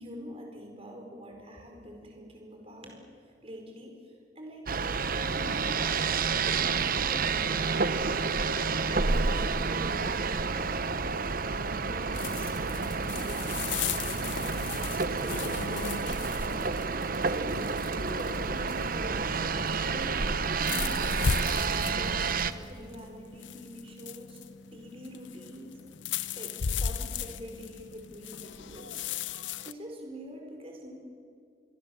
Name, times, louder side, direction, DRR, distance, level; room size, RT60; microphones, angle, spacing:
voice 1, 0.0-3.0 3.4-4.0 4.3-4.7 5.1-7.9 8.9-11.2 11.7-13.7 14.1-19.3 19.9-25.8 26.3-29.0 29.6-31.0, equal, 35° right, 2 dB, 4.6 m, -45 dB
sound 1, 4.7-22.5, right 4 dB, 50° right, 0.9 m, -29 dB
sound 2, 12.1-29.7, left 6 dB, 90° left, 0.7 m, -37 dB
28.0 x 22.5 x 7.2 m, 2.3 s
head